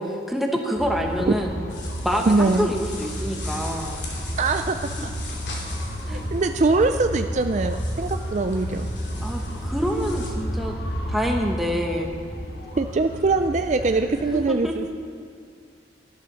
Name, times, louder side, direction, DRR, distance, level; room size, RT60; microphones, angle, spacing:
voice 1, 0.0-1.6 2.0-4.1 6.1-6.2 9.2-10.8 11.1-12.2 14.3-14.7, equal, ahead, 1 dB, 1.3 m, -26 dB
sound 1, 0.8-14.4, equal, 60° left, 2.0 m, -31 dB
sound 2, 1.7-10.3, left 3 dB, 80° left, 2.7 m, -41 dB
voice 2, 2.3-2.7 4.4-4.8 5.0-5.1 6.1-8.9 12.8-14.9, right 3 dB, 40° right, 7 dB, 0.4 m, -22 dB
12.0 x 12.0 x 6.2 m, 2.3 s
head